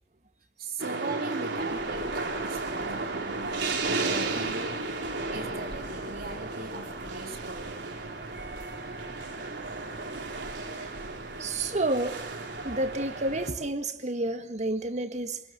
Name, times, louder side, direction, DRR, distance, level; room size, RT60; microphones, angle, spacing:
voice 1, 0.6-2.1 2.4-3.6 4.1-4.7 5.3-7.8, right 3 dB, 60° right, 3.8 m, -39 dB
sound 1, 0.8-13.5, right 3 dB, 85° right, 3.5 m, -34 dB
sound 2, 1.5-13.7, equal, 5° right, 3.0 m, -49 dB
voice 2, 11.4-12.2 12.6-15.4, right 2 dB, 40° right, 1.8 m, -30 dB
27.5 x 21.5 x 7.5 m
head